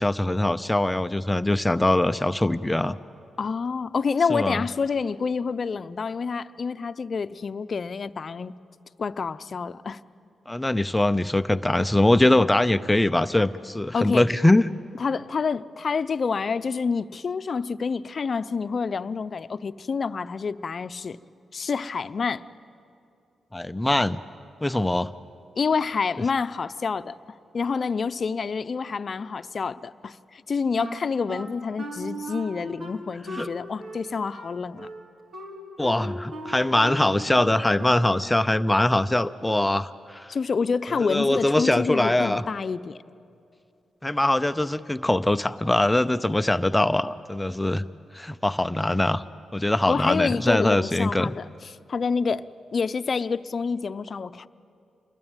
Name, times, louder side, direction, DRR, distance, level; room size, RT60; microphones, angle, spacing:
voice 1, 0.0-3.0 4.3-4.6 10.5-14.6 23.5-24.2 24.6-25.1 33.3-33.5 35.8-40.3 41.0-42.4 44.0-47.8 48.1-49.2 49.5-51.3, left 1 dB, 15° left, 0.7 m, -22 dB
voice 2, 3.4-8.5 9.0-10.0 13.9-14.3 14.9-21.2 21.5-22.4 25.6-27.2 27.5-34.9 40.3-43.0 49.9-52.5 52.7-54.5, left 5 dB, 55° left, 0.7 m, -28 dB
Wind instrument woodwind instrument, 30.8-38.3, right 1 dB, 65° right, 3.7 m, -38 dB
28.0 x 21.5 x 9.0 m
cardioid pair, 60°, 0 cm